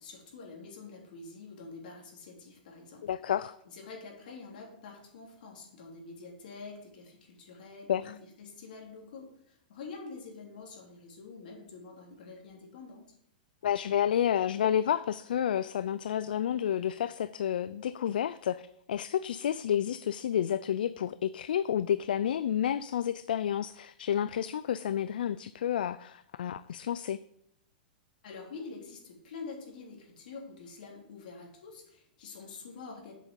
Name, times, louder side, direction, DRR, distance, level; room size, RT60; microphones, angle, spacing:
voice 1, 0.0-3.0 3.6-13.1 28.2-33.1, left 4 dB, 70° left, 0 dB, 3.2 m, -46 dB
voice 2, 3.0-3.5 7.9-8.1 13.6-27.2, left 9 dB, 85° left, 15 dB, 0.3 m, -30 dB
7.6 x 6.4 x 5.3 m, 0.74 s
hypercardioid pair, 140°, 5 cm